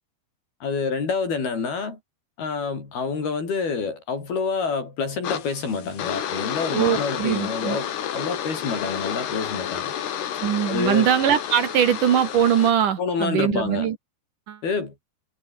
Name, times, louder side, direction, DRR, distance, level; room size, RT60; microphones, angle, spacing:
voice 1, 0.6-2.0 2.4-9.9 10.7-11.1 13.0-13.9 14.6-14.9, left 5 dB, 70° left, 8.0 m, -27 dB
sound 1, 5.2-12.7, left 9 dB, 85° left, 4.6 m, -30 dB
voice 2, 6.7-7.8 10.4-14.0 14.5-14.6, right 9 dB, 60° right, 2.8 m, -21 dB
omnidirectional pair, 4.6 m